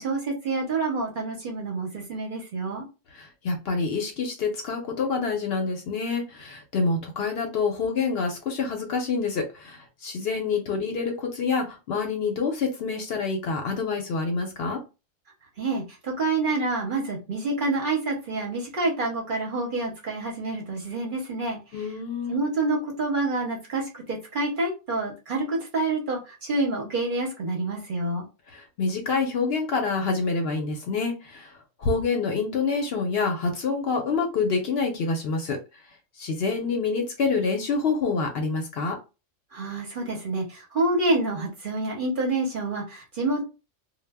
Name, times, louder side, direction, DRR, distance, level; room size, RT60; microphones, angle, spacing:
voice 1, 0.0-2.8 15.6-21.6 22.3-28.2 39.5-43.4, right 2 dB, 50° right, -1 dB, 0.7 m, -27 dB
voice 2, 3.1-14.8 21.7-22.4 28.5-31.5 31.8-35.6 36.2-39.0, left 4 dB, 65° left, 3 dB, 0.7 m, -27 dB
2.1 x 2.0 x 3.3 m, 0.29 s
omnidirectional pair, 1.3 m